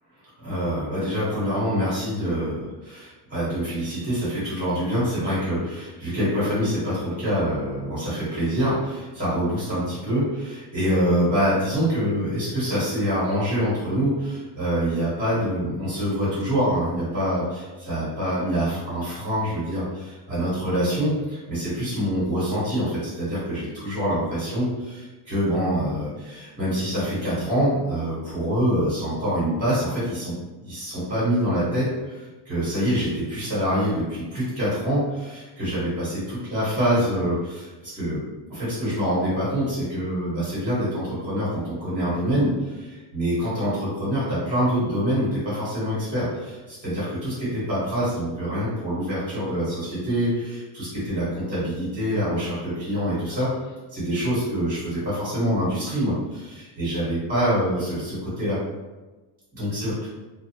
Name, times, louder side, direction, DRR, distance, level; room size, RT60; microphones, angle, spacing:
voice 1, 0.4-30.3 30.6-38.2 38.5-53.5 53.9-58.6 59.6-60.1, equal, 20° right, -13 dB, 1.2 m, -25 dB
2.4 x 2.3 x 2.8 m, 1.2 s
cardioid pair, 175°, 49 cm